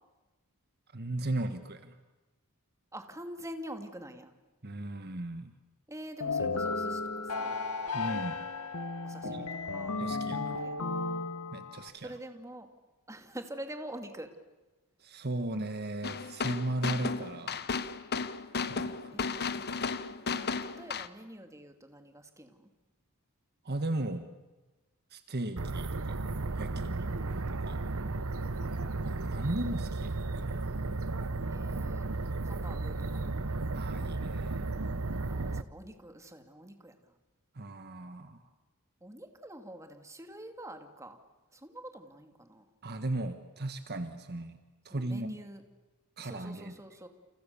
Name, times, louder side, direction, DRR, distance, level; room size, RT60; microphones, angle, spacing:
voice 1, 0.9-1.9 4.6-5.5 7.9-8.4 9.2-9.5 9.9-10.6 11.5-12.1 15.0-17.6 18.7-18.9 23.6-24.3 25.1-26.3 26.5-27.9 29.0-30.8 33.7-34.6 37.5-38.4 42.8-44.6 44.8-45.3 46.2-46.7, right 2 dB, 45° right, 9 dB, 1.5 m, -36 dB
voice 2, 2.9-4.3 5.9-7.6 9.0-10.0 10.5-10.9 12.0-12.7 13.1-14.3 19.1-22.7 26.7-27.6 28.0-28.6 31.5-32.1 32.4-33.2 35.3-37.1 39.0-41.2 41.5-42.7 44.9-45.6 46.2-47.1, right 1 dB, 15° right, 6 dB, 2.5 m, -46 dB
sound 1, 6.2-11.9, left 3 dB, 85° left, 1.9 m, -34 dB
sound 2, 16.0-21.1, left 5 dB, 45° left, 1.1 m, -34 dB
sound 3, 25.6-35.6, right 3 dB, 65° right, 1.0 m, -34 dB
30.0 x 28.5 x 7.0 m, 1.1 s
head